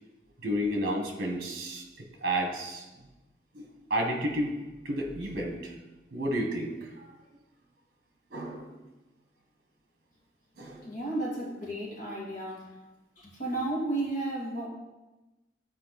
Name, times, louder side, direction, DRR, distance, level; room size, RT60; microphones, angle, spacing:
voice 1, 0.4-1.8 2.2-2.8 3.5-4.5 4.8-5.7 6.1-7.0 8.3-8.7 10.6-10.8, right 1 dB, 50° right, 2 dB, 1.4 m, -31 dB
voice 2, 10.8-12.7 13.2-14.7, right 2 dB, 45° left, -4 dB, 2.3 m, -33 dB
12.0 x 4.4 x 4.1 m, 1.1 s
head